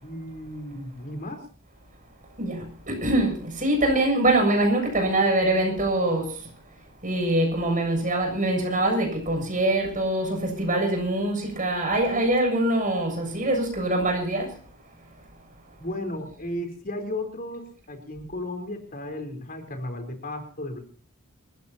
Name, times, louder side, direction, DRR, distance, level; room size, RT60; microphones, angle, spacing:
voice 1, 0.0-1.5 15.8-20.8, left 1 dB, 45° left, 4.1 m, -34 dB
voice 2, 2.4-6.5 7.0-14.6, right 1 dB, 40° right, 7.3 m, -24 dB
28.5 x 15.0 x 2.9 m
head